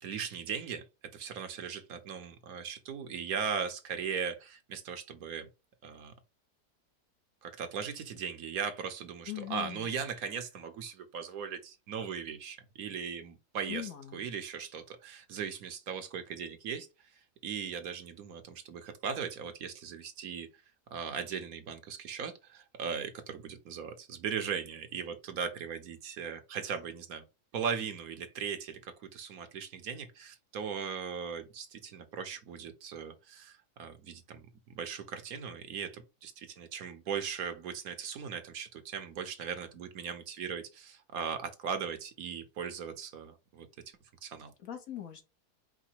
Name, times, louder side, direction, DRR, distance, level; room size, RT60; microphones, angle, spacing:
voice 1, 0.0-0.8 1.1-5.5 5.8-6.1 7.4-16.9 17.4-20.5 20.9-27.2 27.5-34.5 34.7-43.7 44.2-44.5, right 6 dB, 70° right, 1.2 m, -38 dB
voice 2, 9.3-9.9 13.7-14.3 44.6-45.2, left 12 dB, 65° left, 1.3 m, -40 dB
4.9 x 2.2 x 4.4 m
omnidirectional pair, 1.7 m